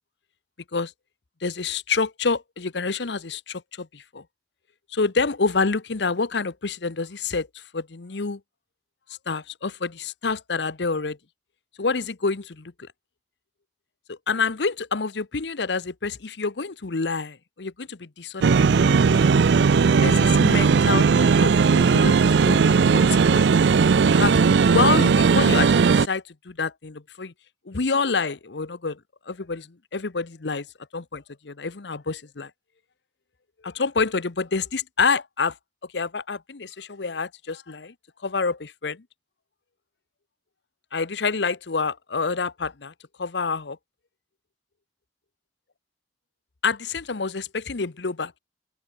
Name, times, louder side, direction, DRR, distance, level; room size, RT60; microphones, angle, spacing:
voice 1, 1.4-4.2 4.9-8.4 9.3-11.2 11.8-12.9 14.1-19.3 20.0-23.5 24.1-27.3 27.7-29.0 29.3-30.7 30.9-32.5 33.6-35.6 35.9-37.9 38.2-39.0 40.9-42.9 43.2-43.8 46.6-48.4, left 4 dB, 70° left, 0.9 m, -28 dB
sound 1, 18.4-26.1, right 5 dB, 70° right, 0.4 m, -17 dB
open air
head